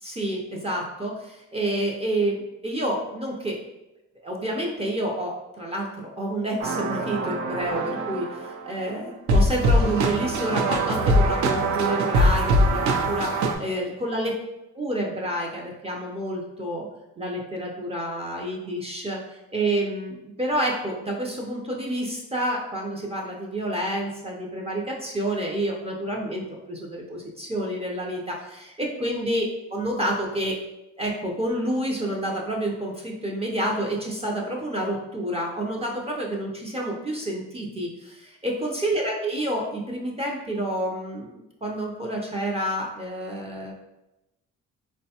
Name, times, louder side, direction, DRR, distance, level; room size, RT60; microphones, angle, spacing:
voice 1, 0.0-3.6 4.2-14.4 14.7-16.9 17.2-30.6 31.0-43.7, right 1 dB, 20° right, -2 dB, 0.5 m, -29 dB
sound 1, 6.6-8.6 9.3-13.5, right 1 dB, 65° right, 0.5 m, -22 dB
3.9 x 2.1 x 2.8 m, 0.95 s
cardioid pair, 90°, 30 cm